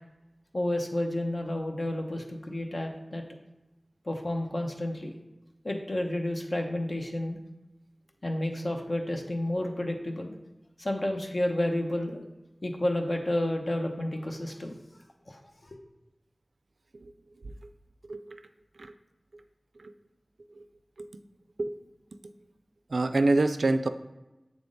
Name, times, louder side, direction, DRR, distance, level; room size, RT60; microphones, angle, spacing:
voice 1, 0.5-3.2 4.1-5.1 5.6-7.4 8.2-10.3 10.8-12.2 12.6-14.8 15.3-15.8, left 1 dB, 55° left, 2 dB, 0.8 m, -31 dB
voice 2, 18.1-18.4 18.8-18.9 19.3-19.4 19.8-19.9 20.5-20.6 21.0-21.1 21.6-21.8 22.9-23.9, right 2 dB, 85° right, 9 dB, 0.3 m, -27 dB
7.3 x 3.5 x 3.8 m, 1.0 s
wide cardioid pair, 50°, 0 cm